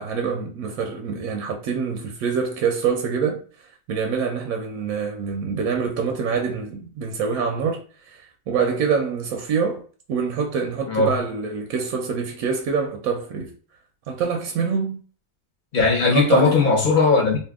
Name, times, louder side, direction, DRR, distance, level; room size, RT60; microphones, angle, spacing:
voice 1, 0.0-9.8 10.1-13.5 14.1-15.0 16.1-16.6, right 5 dB, 80° right, 1.0 m, -25 dB
voice 2, 15.7-17.4, left 4 dB, 40° left, 0.9 m, -18 dB
2.7 x 2.6 x 3.5 m
omnidirectional pair, 1.5 m